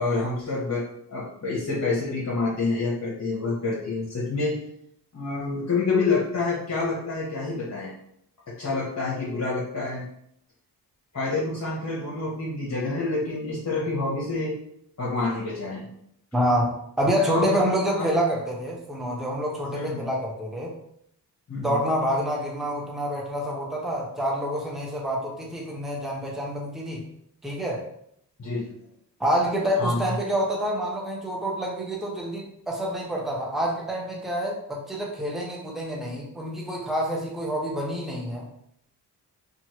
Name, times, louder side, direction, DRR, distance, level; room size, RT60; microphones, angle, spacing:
voice 1, 0.0-4.6 5.1-7.9 8.5-10.0 11.1-14.6 15.0-15.9 17.3-17.6 18.0-18.1 19.7-20.0 21.5-21.8 28.4-28.7 29.8-30.1, left 3 dB, 40° left, -5 dB, 0.9 m, -27 dB
voice 2, 16.3-20.7 21.5-27.0 27.4-27.8 29.2-38.5, equal, ahead, -2 dB, 0.8 m, -27 dB
2.9 x 2.3 x 2.9 m, 0.72 s
cardioid pair, 45°, 43 cm